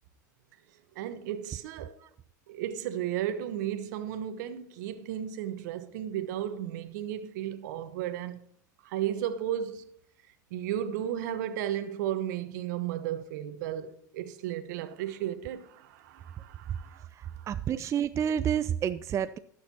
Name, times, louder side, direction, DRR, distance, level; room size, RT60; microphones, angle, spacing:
voice 1, 1.0-2.0 2.5-8.4 8.8-9.9 10.5-17.1 17.4-17.5, right 11 dB, 65° right, 1.1 m, -34 dB
voice 2, 17.1-19.4, right 9 dB, 30° right, 0.4 m, -29 dB
18.5 x 6.6 x 2.9 m
hypercardioid pair, 90°, 10 cm